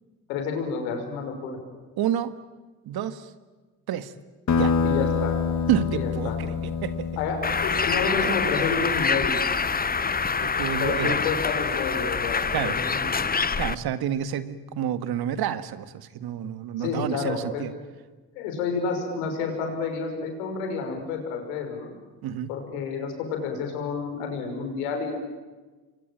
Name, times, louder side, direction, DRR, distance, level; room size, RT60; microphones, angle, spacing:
voice 1, 0.3-1.6 4.8-5.4 5.9-6.4 7.2-9.4 10.8-13.3 16.8-17.6 18.3-21.9 22.5-25.1, left 5 dB, 85° left, 4 dB, 5.9 m, -30 dB
voice 2, 2.0-2.3 2.9-3.3 3.9-4.1 4.5-4.7 5.7-7.1 10.4-11.2 12.5-12.8 13.6-17.7 22.2-22.5, right 10 dB, 60° right, 12 dB, 1.8 m, -29 dB
sound 1, 4.5-9.6, left 6 dB, 40° left, 1.9 m, -27 dB
Bird, 7.4-13.7, left 5 dB, 20° left, 1.0 m, -25 dB
28.0 x 23.0 x 8.9 m, 1.3 s
hypercardioid pair, 60°, 42 cm